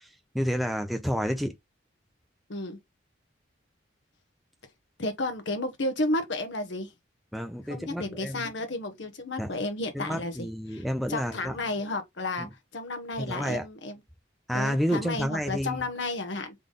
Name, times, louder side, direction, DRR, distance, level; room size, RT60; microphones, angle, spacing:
voice 1, 0.3-1.5 7.3-8.4 9.4-9.5 9.9-11.6 12.4-12.5 13.2-13.7 14.5-15.8, equal, ahead, 0.6 m, -30 dB
voice 2, 5.0-6.9 7.7-10.8 11.1-12.5 12.7-14.0 14.5-16.5, left 2 dB, 65° left, 1.0 m, -32 dB
3.9 x 3.4 x 3.7 m
head